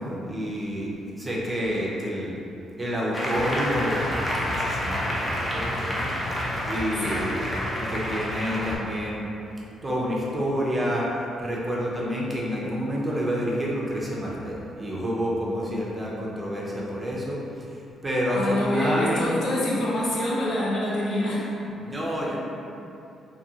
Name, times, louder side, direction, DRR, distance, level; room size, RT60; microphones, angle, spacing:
voice 1, 0.0-0.9 1.2-2.4 2.8-4.2 4.5-7.4 7.8-9.3 9.8-11.1 11.4-19.3 21.8-22.4, equal, 20° right, -5 dB, 0.5 m, -29 dB
Applause, 3.1-8.8, equal, 25° left, 0.6 m, -28 dB
voice 2, 18.3-21.5 22.3-22.4, left 1 dB, 70° left, -7 dB, 0.7 m, -26 dB
2.6 x 2.5 x 2.7 m, 2.8 s
cardioid pair, 90°, 0 cm